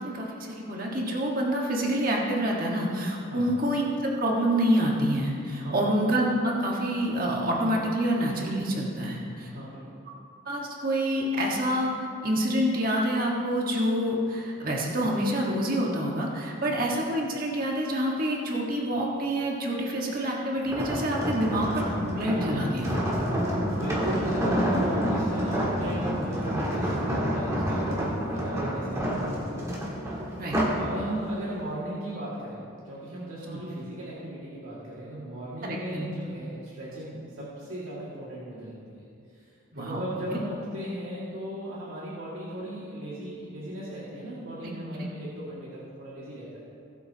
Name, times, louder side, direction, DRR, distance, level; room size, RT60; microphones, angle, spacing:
voice 1, 0.0-9.5 10.4-11.9 12.2-23.0 30.4-30.6 33.4-33.6 35.6-36.1 39.7-40.0 40.3-40.4 44.6-44.7 45.0-45.1, equal, 40° right, -2 dB, 1.5 m, -27 dB
voice 2, 5.6-5.9 9.4-10.0 16.6-16.8 23.8-29.7 30.8-32.6 32.8-39.5 39.7-46.5, right 1 dB, 80° right, -8 dB, 2.2 m, -37 dB
sound 1, 20.7-30.9 31.3-31.6, equal, 15° right, 1.7 m, -28 dB
19.0 x 8.1 x 2.9 m, 2.5 s
head